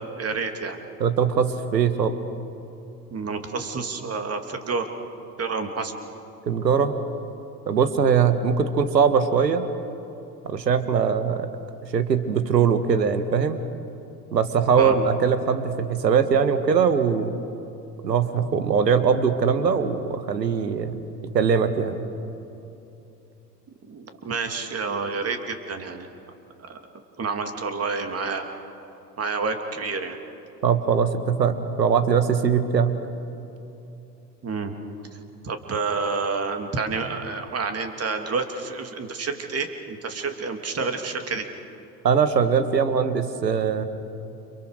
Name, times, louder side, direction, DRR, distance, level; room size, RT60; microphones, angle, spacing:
voice 1, 0.1-0.8 3.1-4.9 5.4-5.9 14.7-15.0 23.9-26.1 26.7-26.8 27.2-28.4 29.2-30.2 34.4-34.7 35.4-41.5, right 4 dB, 30° right, 5 dB, 3.0 m, -29 dB
voice 2, 1.0-2.1 6.5-7.0 7.7-9.6 10.4-11.5 11.9-13.6 14.3-17.4 18.0-21.0 21.3-22.1 30.6-33.0 42.0-43.8, right 6 dB, 80° right, 10 dB, 1.8 m, -21 dB
29.5 x 28.5 x 6.6 m, 2.8 s
figure-of-eight pair, 70°, 49 cm